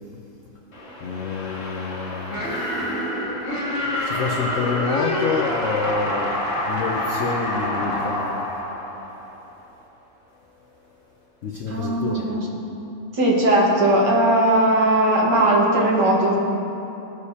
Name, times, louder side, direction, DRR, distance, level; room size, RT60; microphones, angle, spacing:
sound 1, 0.7-9.6, left 1 dB, 35° left, 1.3 m, -27 dB
voice 1, 1.0-2.8 4.0-6.3 6.7-8.4 11.4-12.3, left 5 dB, 80° left, 1 dB, 0.7 m, -28 dB
voice 2, 11.7-12.7 13.1-16.4, right 1 dB, 60° right, -3 dB, 2.0 m, -19 dB
17.0 x 6.4 x 2.8 m, 3.0 s
omnidirectional pair, 2.2 m